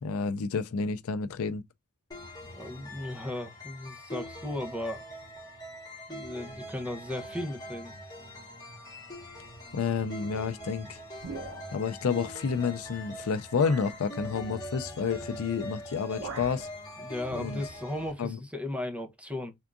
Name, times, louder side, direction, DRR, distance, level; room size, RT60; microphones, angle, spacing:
voice 1, 0.0-1.6 9.7-11.0 11.7-16.7 17.4-17.6 18.2-18.4, left 5 dB, 75° left, 0.4 m, -30 dB
sound 1, 2.1-18.1, equal, 20° left, 1.5 m, -43 dB
voice 2, 2.6-5.0 6.1-7.9 17.0-19.5, left 1 dB, 5° right, 0.7 m, -36 dB
sound 2, 11.2-12.0 12.9-13.0 13.5-14.0 15.4-15.6 15.9-16.7, right 3 dB, 85° right, 0.9 m, -42 dB
3.6 x 3.5 x 2.5 m
head